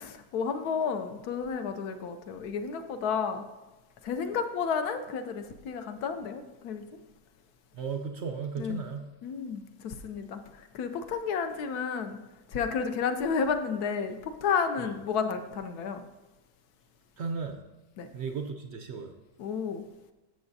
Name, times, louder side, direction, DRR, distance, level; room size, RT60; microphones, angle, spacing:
voice 1, 0.0-3.4 4.0-6.8 8.6-8.8 9.2-12.2 12.5-16.0 18.0-18.1 19.4-19.9, left 6 dB, 70° left, 8 dB, 1.1 m, -31 dB
voice 2, 7.7-9.1 14.8-14.9 17.2-17.6 18.1-19.1, right 5 dB, 70° right, 4 dB, 0.6 m, -35 dB
12.5 x 7.1 x 2.7 m, 1.1 s
omnidirectional pair, 1.8 m